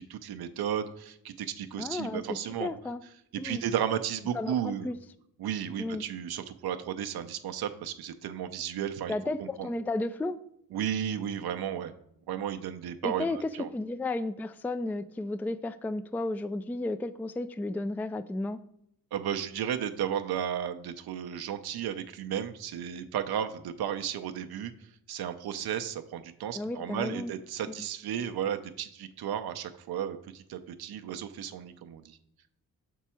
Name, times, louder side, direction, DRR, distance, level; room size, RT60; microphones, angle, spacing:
voice 1, 0.1-2.7 3.4-4.9 5.4-9.1 9.4-9.7 10.7-11.9 12.3-13.7 19.1-24.7 25.1-32.2, right 9 dB, 80° right, 8 dB, 0.6 m, -34 dB
voice 2, 1.8-2.2 2.6-3.0 3.4-3.6 4.3-5.0 5.8-6.1 9.1-10.4 13.0-18.6 26.5-27.3, left 2 dB, 5° left, 13 dB, 0.3 m, -33 dB
6.0 x 4.6 x 4.4 m, 0.74 s
cardioid pair, 65°, 37 cm